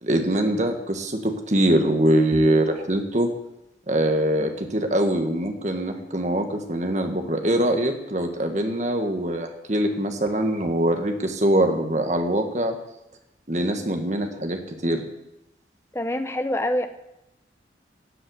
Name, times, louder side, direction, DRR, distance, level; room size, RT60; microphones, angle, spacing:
voice 1, 0.0-3.3 3.9-12.7 13.5-15.0, right 1 dB, 40° right, 5 dB, 1.6 m, -23 dB
voice 2, 15.9-16.9, left 1 dB, 15° left, 8 dB, 0.8 m, -26 dB
13.0 x 7.8 x 8.1 m, 0.88 s
head